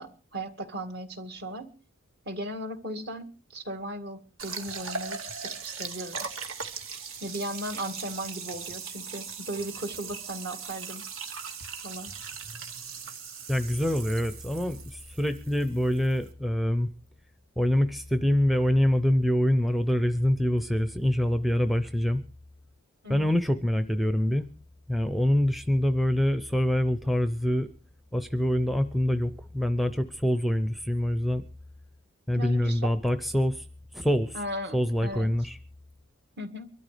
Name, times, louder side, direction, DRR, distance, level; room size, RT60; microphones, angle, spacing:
voice 1, 0.0-1.7 2.3-5.2 5.4-6.3 7.2-11.0 11.8-12.1 23.0-23.3 32.4-32.9 34.3-35.3 36.4-36.7, right 1 dB, 50° right, 7 dB, 2.0 m, -37 dB
sound 1, 4.4-16.3, right 5 dB, 70° right, 2.0 m, -39 dB
voice 2, 13.5-16.9 17.6-22.2 23.1-24.5 24.9-27.7 28.1-31.4 32.3-33.6 33.9-34.4 34.7-35.6, equal, ahead, 10 dB, 0.6 m, -25 dB
24.0 x 13.0 x 3.4 m, 0.37 s
head